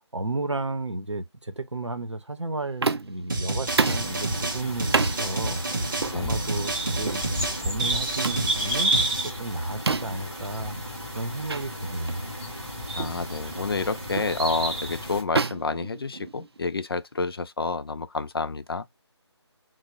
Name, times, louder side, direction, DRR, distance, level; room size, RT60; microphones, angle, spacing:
voice 1, 0.1-5.6 6.1-7.3 7.6-9.0 9.2-10.8 11.1-12.3, right 2 dB, 90° right, 0.7 m, -32 dB
sound 1, 2.8-3.2 3.8-4.1 4.9-5.2 6.0-6.2 7.0-7.2 8.2-8.5 9.9-10.2 11.5-11.6 12.1-12.2 13.0-13.2 14.1-14.4 15.3-16.6, right 4 dB, 60° right, 0.4 m, -27 dB
sound 2, 3.3-9.3, right 2 dB, 45° right, 0.8 m, -30 dB
sound 3, 3.6-15.2, right 1 dB, 5° right, 0.5 m, -32 dB
voice 2, 12.9-18.9, left 3 dB, 55° left, 0.4 m, -29 dB
3.2 x 2.1 x 3.5 m
figure-of-eight pair, 160°, 15 cm